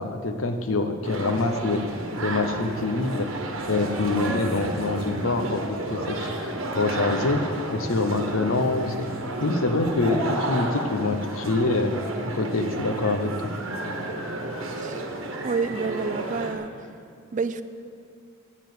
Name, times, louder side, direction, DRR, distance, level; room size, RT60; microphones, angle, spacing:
voice 1, 0.0-1.8 2.2-3.3 3.7-7.4 7.7-9.1 9.4-11.9 12.3-13.5, left 3 dB, 80° left, 7 dB, 0.8 m, -25 dB
sound 1, 1.0-16.5, right 1 dB, 70° right, 1.3 m, -32 dB
voice 2, 15.4-16.7 17.3-17.6, right 4 dB, 40° right, 11 dB, 0.4 m, -28 dB
9.6 x 6.9 x 7.9 m, 2.4 s
head